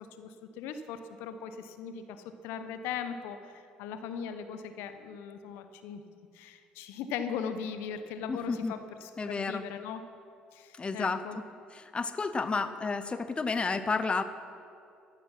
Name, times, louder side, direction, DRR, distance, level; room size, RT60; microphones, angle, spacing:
voice 1, 0.2-6.0 6.3-10.0 10.5-11.4, left 7 dB, 70° left, 9 dB, 0.9 m, -39 dB
voice 2, 8.3-8.7 9.2-9.7 10.8-11.3 11.7-14.2, left 4 dB, 25° left, 11 dB, 0.8 m, -31 dB
14.0 x 11.5 x 5.7 m, 2.5 s
hypercardioid pair, 55°, 4 cm